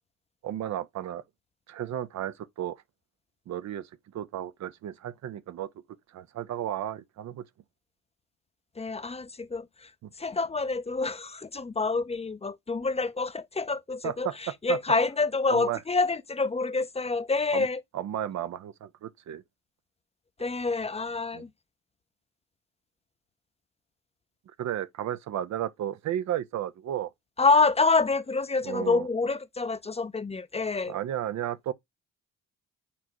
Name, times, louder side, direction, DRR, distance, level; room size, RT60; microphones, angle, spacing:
voice 1, 0.4-1.2 1.7-2.8 3.5-5.7 6.1-7.4 14.0-14.8 15.5-15.8 17.5-17.7 17.9-19.4 21.3-21.4 24.6-27.1 28.6-29.1 30.9-31.7, right 11 dB, 65° right, 0.7 m, -33 dB
voice 2, 8.8-17.8 20.4-21.5 27.4-30.9, left 3 dB, 20° left, 0.6 m, -27 dB
8.5 x 4.6 x 2.9 m
cardioid pair, 90°, 30 cm